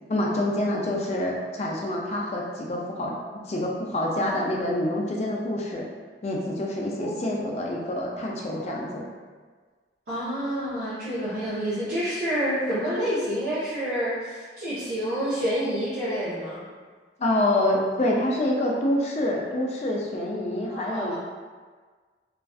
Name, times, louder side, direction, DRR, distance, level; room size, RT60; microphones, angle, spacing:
voice 1, 0.1-3.1 3.4-5.9 6.2-9.1 17.2-21.2, left 1 dB, 35° left, -2 dB, 0.3 m, -26 dB
voice 2, 7.0-7.5 10.1-16.6 20.7-21.2, equal, 60° right, -12 dB, 0.7 m, -28 dB
2.4 x 2.3 x 2.3 m, 1.5 s
head